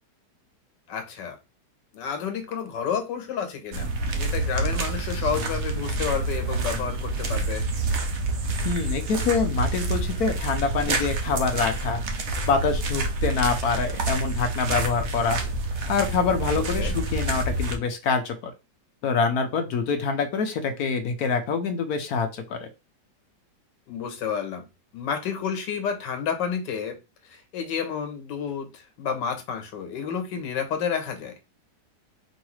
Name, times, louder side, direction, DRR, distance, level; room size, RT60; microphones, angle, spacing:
voice 1, 0.9-1.4 1.9-7.6 16.5-17.0 23.9-24.7 24.9-27.0 27.2-31.3, left 7 dB, 90° left, 6 dB, 1.6 m, -30 dB
sound 1, 3.7-17.8, right 2 dB, 55° right, 0.8 m, -28 dB
voice 2, 8.6-12.0 12.5-15.4 15.9-18.5 19.0-22.7, left 5 dB, 70° left, 7 dB, 1.0 m, -25 dB
4.6 x 3.1 x 3.0 m, 0.26 s
omnidirectional pair, 1.9 m